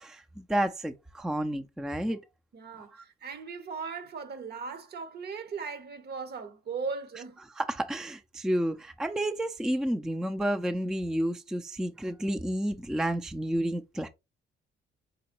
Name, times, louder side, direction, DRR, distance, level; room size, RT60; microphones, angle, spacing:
voice 1, 0.0-2.2 2.9-3.0 7.6-14.1, right 1 dB, 5° right, 0.4 m, -30 dB
voice 2, 2.5-7.4, right 5 dB, 55° right, 1.0 m, -38 dB
4.2 x 3.8 x 2.9 m
cardioid pair, 90°, 20 cm